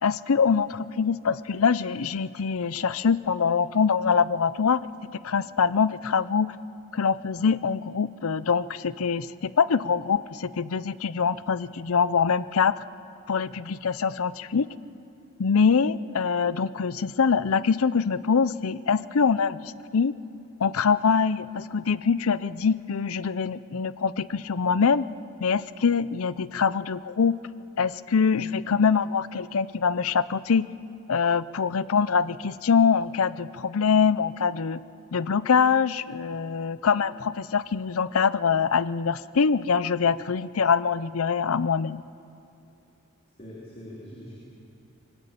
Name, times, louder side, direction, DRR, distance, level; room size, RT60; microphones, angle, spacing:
voice 1, 0.0-4.8 5.2-6.6 6.9-12.8 13.3-14.7 15.4-20.1 20.6-25.1 25.4-27.3 27.8-30.6 31.1-34.8 35.1-42.0, left 6 dB, 65° left, 17 dB, 0.6 m, -24 dB
voice 2, 43.4-44.3, equal, 30° left, -5 dB, 3.6 m, -42 dB
22.5 x 18.5 x 8.4 m, 2.7 s
head